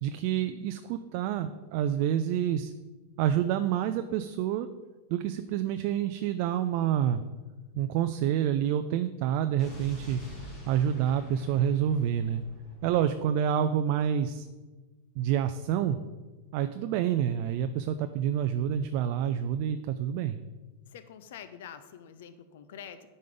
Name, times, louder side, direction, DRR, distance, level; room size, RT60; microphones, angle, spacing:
voice 1, 0.0-2.7 3.2-4.7 5.1-7.2 7.7-10.2 10.7-12.4 12.8-14.5 15.2-16.0 16.5-20.4, right 9 dB, 45° right, 9 dB, 0.3 m, -28 dB
Explosion, 9.6-13.6, equal, 20° left, 2.7 m, -46 dB
voice 2, 20.9-23.1, left 8 dB, 65° left, 11 dB, 0.6 m, -46 dB
9.3 x 5.2 x 3.9 m, 1.2 s
supercardioid pair, 160°, 0 cm